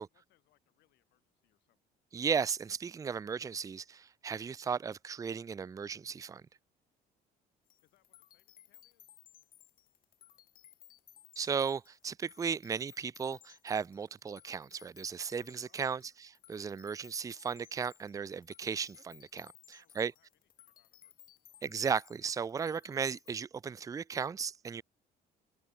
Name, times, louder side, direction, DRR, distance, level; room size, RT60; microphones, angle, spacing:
voice 1, 0.0-2.0 7.8-9.2 15.6-16.2 19.8-21.7, left 17 dB, 80° left, 7.3 m, -75 dB
voice 2, 2.1-6.4 11.4-16.0 16.5-20.1 21.6-24.8, right 6 dB, 20° right, 0.4 m, -35 dB
sound 1, 7.7-23.3, left 12 dB, 60° left, 1.5 m, -60 dB
cardioid pair, 110°, 17 cm